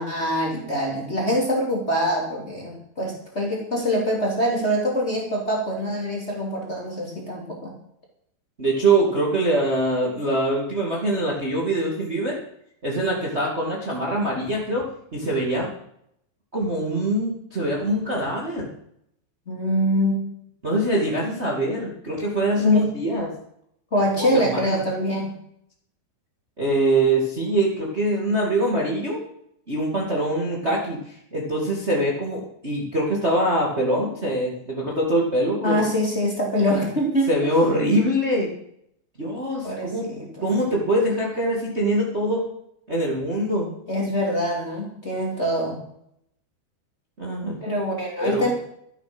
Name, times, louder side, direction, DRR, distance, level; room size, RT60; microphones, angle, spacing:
voice 1, 0.0-7.8 19.5-20.2 22.6-22.8 23.9-25.4 35.6-37.5 39.6-40.6 43.9-45.8 47.6-48.5, equal, 20° left, -1 dB, 1.9 m, -24 dB
voice 2, 8.6-12.4 12.8-15.7 16.5-18.7 20.6-23.3 24.5-24.8 26.6-29.2 29.7-35.8 37.3-38.5 39.2-40.1 40.4-42.4 42.9-43.8 47.2-47.6 48.2-48.5, right 1 dB, 65° right, -2 dB, 0.6 m, -23 dB
13.0 x 10.5 x 6.1 m, 0.72 s
omnidirectional pair, 5.4 m